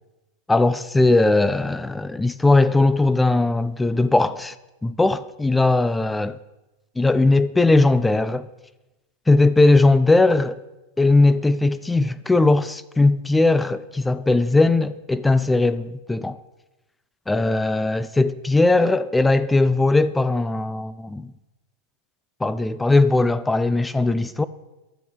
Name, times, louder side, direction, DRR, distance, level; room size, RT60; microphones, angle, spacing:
voice 1, 0.5-4.5 4.8-6.4 7.0-8.5 9.3-10.6 11.0-16.4 17.3-21.3 22.4-24.5, left 2 dB, 10° left, 0.5 m, -19 dB
11.0 x 7.1 x 6.1 m
hypercardioid pair, 105°, 0 cm